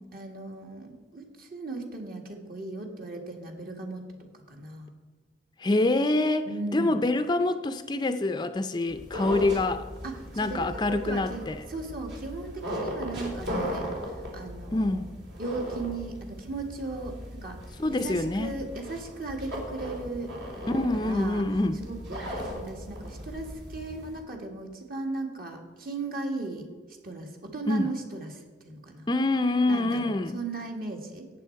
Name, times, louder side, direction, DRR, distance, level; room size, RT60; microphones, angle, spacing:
voice 1, 0.1-4.1 4.5-4.9 6.5-7.0 10.0-15.1 15.4-17.6 17.9-20.3 20.9-26.7 27.0-29.1 29.7-31.3, right 3 dB, 50° right, 2 dB, 1.9 m, -37 dB
voice 2, 5.6-9.8 10.4-11.6 14.7-15.0 17.8-18.5 20.7-21.8 27.7-27.8 29.1-30.4, left 2 dB, 25° left, 9 dB, 0.5 m, -26 dB
sound 1, 8.9-24.2, equal, 70° right, 3.5 m, -38 dB
14.0 x 9.1 x 4.6 m, 1.4 s
head